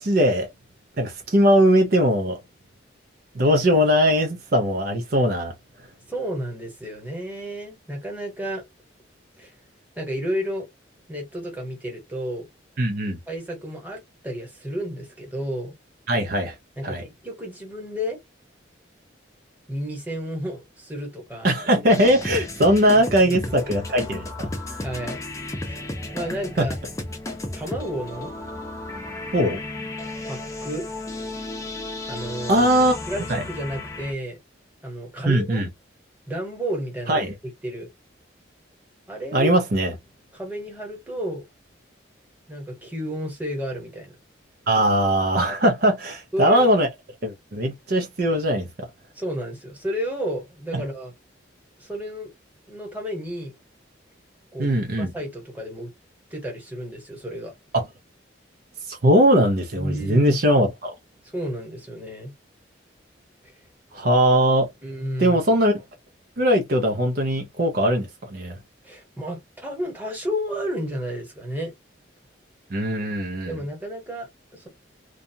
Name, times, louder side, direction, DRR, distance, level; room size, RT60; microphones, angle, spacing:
voice 1, 0.0-0.5 1.0-2.4 3.3-5.5 12.8-13.2 16.1-16.5 16.8-17.0 21.4-24.8 26.6-26.7 29.3-29.6 32.5-33.0 33.3-33.4 35.3-35.7 37.1-37.3 39.3-39.9 44.7-46.9 47.2-48.7 50.7-50.8 54.6-55.1 57.7-57.8 58.9-60.9 63.9-64.7 65.2-65.7 66.4-68.6 72.7-73.5, equal, 50° right, 0.5 m, -20 dB
voice 2, 6.1-8.6 9.4-9.5 10.0-10.7 11.1-12.5 13.3-15.7 16.8-18.2 19.7-21.5 22.9-23.7 24.8-25.2 25.6-25.8 26.1-26.8 27.5-28.3 30.2-30.9 32.1-32.7 33.1-34.4 34.8-35.6 36.3-37.3 37.6-37.9 39.1-39.5 40.3-41.4 42.5-44.1 46.3-46.7 49.1-51.1 51.8-52.3 52.7-53.5 54.5-54.7 55.0-55.9 56.3-57.5 59.7-60.6 61.3-62.3 64.8-65.4 68.8-71.7 73.5-74.7, equal, 10° right, 1.2 m, -31 dB
sound 1, 21.9-34.1, left 2 dB, 15° left, 0.6 m, -33 dB
2.6 x 2.3 x 2.7 m
head